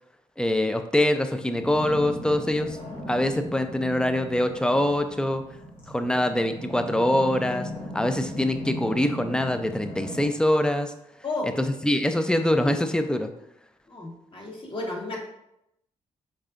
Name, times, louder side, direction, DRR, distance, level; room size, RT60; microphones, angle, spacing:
voice 1, 0.4-2.8 3.1-5.4 5.9-10.9 11.6-13.3, left 1 dB, 5° left, 8 dB, 0.6 m, -24 dB
sound 1, 1.6-10.2, equal, 70° left, 1.7 m, -38 dB
voice 2, 13.9-15.2, left 2 dB, 35° left, -2 dB, 1.5 m, -32 dB
5.4 x 3.7 x 2.5 m, 0.82 s
hypercardioid pair, 45°, 14 cm